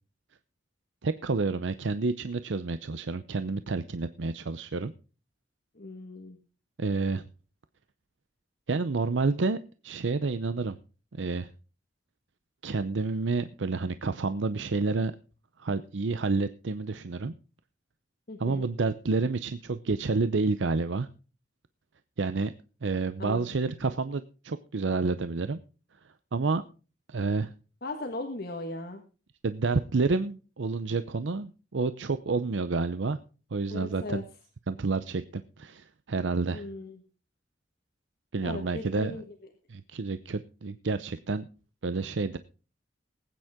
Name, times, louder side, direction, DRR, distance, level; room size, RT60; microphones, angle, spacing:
voice 1, 1.0-4.9 6.8-7.2 8.7-9.6 9.8-10.8 11.2-11.5 12.6-15.1 15.6-17.3 18.4-21.1 22.2-22.5 22.8-25.6 26.3-26.6 27.1-27.5 29.4-33.2 33.5-34.2 34.7-36.6 38.3-39.2 39.7-41.5 41.8-42.4, right 3 dB, 90° right, 12 dB, 0.6 m, -29 dB
voice 2, 5.7-6.4 18.3-18.6 23.2-23.5 27.8-29.0 33.7-34.2 36.5-37.0 38.4-39.2, left 2 dB, 55° left, 4 dB, 1.6 m, -38 dB
20.0 x 9.2 x 3.6 m, 0.35 s
head